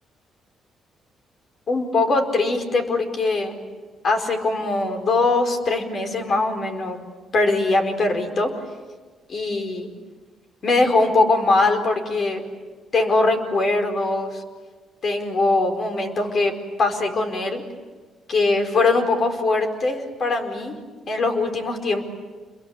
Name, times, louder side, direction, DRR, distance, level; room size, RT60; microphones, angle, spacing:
voice 1, 1.7-3.6 4.0-7.0 7.3-8.5 9.3-9.9 10.6-12.4 12.9-14.4 15.0-16.5 16.8-17.6 18.3-20.8 21.1-22.0, left 3 dB, 50° left, 5 dB, 4.9 m, -21 dB
29.0 x 22.5 x 8.7 m, 1.4 s
cardioid pair, 90°, 0 cm